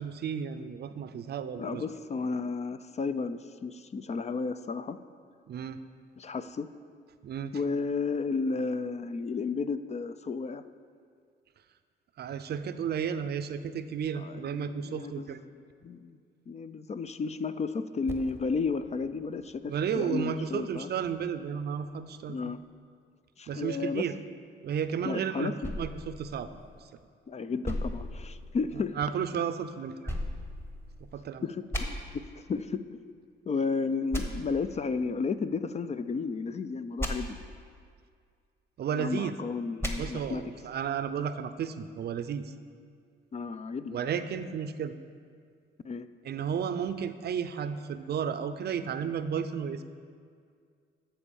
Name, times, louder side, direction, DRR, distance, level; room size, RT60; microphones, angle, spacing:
voice 1, 0.0-1.8 5.5-5.8 7.2-7.5 12.2-15.4 19.7-22.4 23.5-24.1 24.6-26.5 29.0-30.0 31.1-31.4 38.8-39.3 40.0-42.5 43.9-44.9 46.2-49.8, right 7 dB, 55° right, 11 dB, 0.5 m, -33 dB
voice 2, 1.6-5.0 6.2-6.7 7.5-10.6 14.2-15.6 15.8-16.2 16.5-20.9 22.3-22.6 23.4-24.1 25.0-25.7 27.3-29.0 31.4-33.0 33.5-37.4 39.0-40.4 43.3-44.0 45.8-46.1, left 4 dB, 35° left, 12 dB, 0.4 m, -33 dB
Percussion, 18.1-22.9, right 3 dB, 15° right, 0.8 m, -51 dB
sound 1, 25.6-27.0 27.6-28.9 30.0-31.2 31.7-31.8 34.1-34.2 37.0-37.1 39.8-39.9, equal, 10° left, 1.3 m, -35 dB
12.5 x 4.5 x 7.0 m, 2.2 s
cardioid pair, 90°, 20 cm